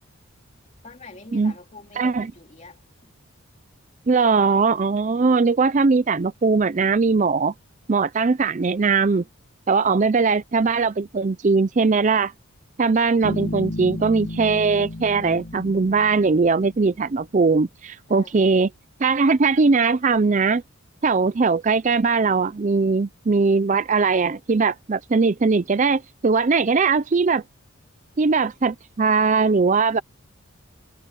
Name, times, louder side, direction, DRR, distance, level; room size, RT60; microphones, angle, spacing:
voice 1, 0.8-3.1 18.1-18.4, left 3 dB, 30° left, 2.6 m, -44 dB
voice 2, 2.0-2.3 4.1-7.5 7.9-9.2 9.7-12.3 12.8-18.7 19.0-20.6 21.0-27.4 28.2-30.0, right 4 dB, 35° right, 0.4 m, -20 dB
Bass guitar, 13.2-16.9, left 1 dB, 55° left, 1.4 m, -33 dB
head